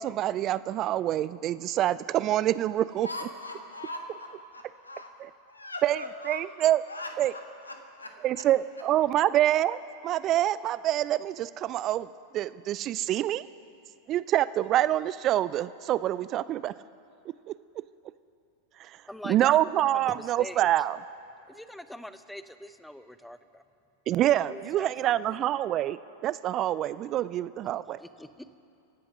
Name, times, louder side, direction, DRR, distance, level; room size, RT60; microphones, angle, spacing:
voice 1, 0.0-3.1 5.2-5.3 5.8-6.8 7.2-7.3 8.2-13.5 14.1-16.7 17.5-17.6 18.8-19.0 19.3-21.0 24.1-28.0, right 13 dB, 35° right, 17 dB, 0.3 m, -26 dB
voice 2, 3.0-5.1 5.5-8.1, left 2 dB, 80° left, 4 dB, 1.6 m, -41 dB
voice 3, 19.9-20.7 21.5-23.6 24.5-25.4 28.0-28.6, left 1 dB, 5° left, 12 dB, 0.6 m, -44 dB
25.5 x 8.7 x 6.1 m, 2.6 s
figure-of-eight pair, 90°, 0 cm